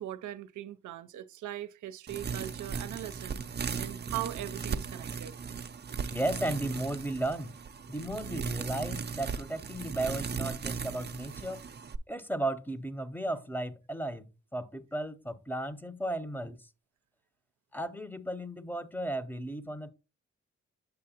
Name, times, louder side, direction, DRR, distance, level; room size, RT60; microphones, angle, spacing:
voice 1, 0.0-3.4 3.8-5.4, right 13 dB, 85° right, 0.5 m, -40 dB
sound 1, 2.1-12.0, right 6 dB, 35° right, 0.5 m, -37 dB
voice 2, 6.1-7.6 7.9-11.6 12.1-14.2 14.5-16.6 17.7-19.9, right 1 dB, 5° left, 0.7 m, -35 dB
7.9 x 6.4 x 2.8 m
cardioid pair, 55°, 29 cm